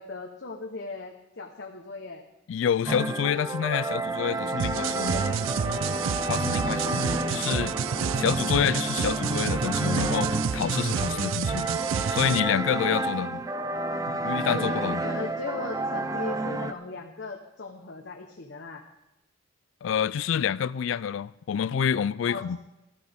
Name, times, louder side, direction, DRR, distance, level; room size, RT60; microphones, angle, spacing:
voice 1, 0.0-2.2 5.0-5.9 6.2-8.2 12.7-13.5 14.5-18.8 22.3-22.6, left 3 dB, 60° left, 1.0 m, -38 dB
voice 2, 2.5-5.2 6.3-7.7 8.2-11.7 12.1-13.4 14.2-15.0 19.8-22.6, left 8 dB, 75° left, 0.3 m, -28 dB
sound 1, 2.9-16.7, right 2 dB, 20° right, 0.5 m, -30 dB
sound 2, 4.6-12.4, right 7 dB, 90° right, 0.4 m, -29 dB
16.0 x 13.0 x 3.5 m
head